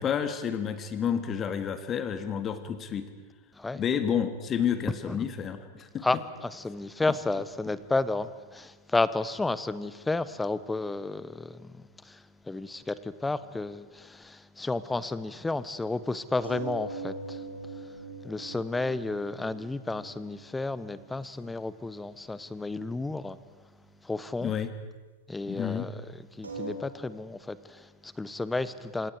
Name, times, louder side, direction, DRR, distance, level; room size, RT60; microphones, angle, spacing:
voice 1, 0.0-3.1 3.7-6.0 24.4-24.7 25.5-25.9, left 8 dB, 25° left, 2.1 m, -30 dB
voice 2, 6.0-17.4 17.7-17.8 18.2-23.4 24.0-24.5 25.3-29.1, left 2 dB, 10° left, 1.0 m, -32 dB
sound 1, 16.4-21.5 21.8-21.9 22.1-22.2 22.6-22.7 26.4-26.8, right 2 dB, 75° right, 4.1 m, -41 dB
27.5 x 27.0 x 4.8 m
figure-of-eight pair, 90°, 0 cm